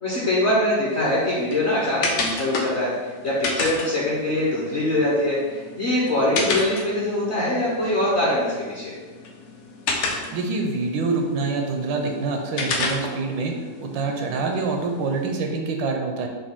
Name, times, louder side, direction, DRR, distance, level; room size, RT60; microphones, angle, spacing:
voice 1, 0.0-8.9, left 1 dB, 50° left, -6 dB, 0.9 m, -23 dB
sound 1, 0.9-15.5, left 3 dB, 80° left, 0.6 m, -32 dB
voice 2, 10.3-13.5 13.8-16.3, right 3 dB, 85° right, 3 dB, 1.4 m, -26 dB
6.0 x 2.3 x 3.5 m, 1.4 s
omnidirectional pair, 2.0 m